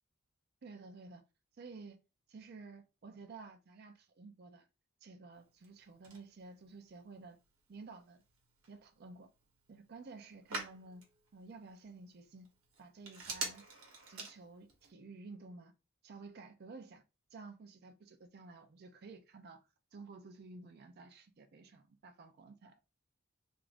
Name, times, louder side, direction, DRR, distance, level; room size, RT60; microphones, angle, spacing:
voice 1, 0.6-1.2 1.6-2.0 2.3-4.7 5.0-7.4 7.7-8.2 8.7-9.3 9.7-11.1 11.3-12.5 12.8-13.6 14.1-15.7 16.0-17.0 17.3-19.6 19.9-22.8, right 3 dB, 50° right, 0.4 m, -52 dB
Telephone, 5.3-14.9, right 3 dB, 85° right, 1.0 m, -49 dB
2.5 x 2.4 x 3.3 m
head